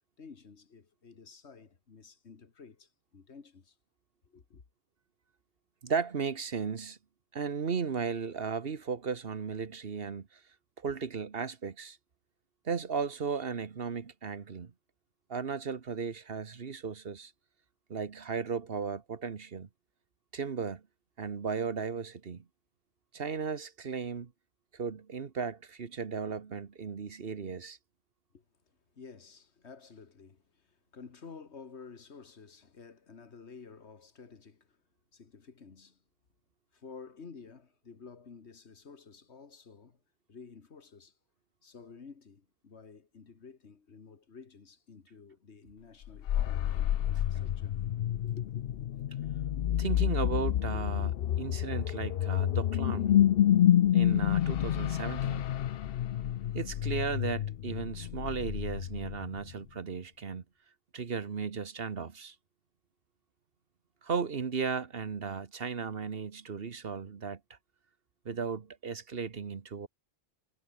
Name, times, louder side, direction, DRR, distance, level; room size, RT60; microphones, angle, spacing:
voice 1, 0.2-3.8 4.3-4.6 28.3-28.4 28.9-34.8 35.1-36.0 36.7-40.0 40.3-41.1 41.6-47.7 48.2-48.8, left 5 dB, 85° left, 2.0 m, -52 dB
voice 2, 5.8-7.0 7.3-10.4 10.8-12.0 12.6-14.7 15.3-17.3 17.9-19.7 20.3-20.8 21.2-22.4 23.1-24.3 24.7-27.8 49.8-53.2 53.9-55.5 56.5-60.4 60.9-62.3 64.0-67.4 68.2-69.9, right 5 dB, 60° right, 1.4 m, -35 dB
sound 1, 46.0-59.5, left 11 dB, 65° left, 0.8 m, -29 dB
omnidirectional pair, 1.1 m